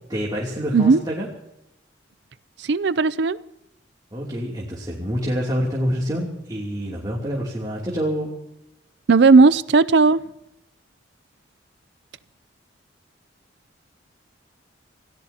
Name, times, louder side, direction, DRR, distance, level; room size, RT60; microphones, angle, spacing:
voice 1, 0.1-1.3 4.1-8.3, equal, 25° right, -4 dB, 3.0 m, -27 dB
voice 2, 2.6-3.4 9.1-10.2, right 4 dB, 65° right, 16 dB, 0.5 m, -15 dB
28.0 x 17.0 x 2.9 m, 0.85 s
head